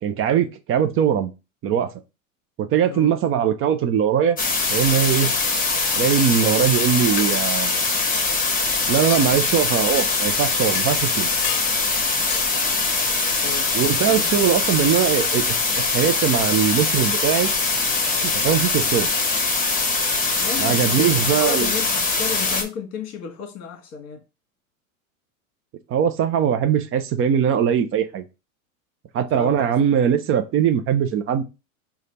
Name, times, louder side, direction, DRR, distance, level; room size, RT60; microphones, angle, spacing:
voice 1, 0.0-1.3 1.6-1.9 2.6-4.4 4.7-5.3 6.0-7.7 8.9-11.3 13.7-15.4 15.9-17.5 18.2-19.1 20.6-21.7 25.9-28.2 29.1-31.4, right 8 dB, 30° right, 0.7 m, -21 dB
sound 1, 4.4-22.6, left 3 dB, 20° left, 1.5 m, -22 dB
sound 2, 7.2-7.3 8.1-8.4 9.1-9.3 10.0-10.1 10.7-10.9 11.4-11.7 12.3-12.5, left 10 dB, 80° left, 0.6 m, -31 dB
voice 2, 13.4-13.7 14.1-14.4 20.4-24.2 29.3-29.7, left 6 dB, 35° left, 1.5 m, -33 dB
4.9 x 2.5 x 4.2 m
hypercardioid pair, 105°, 43 cm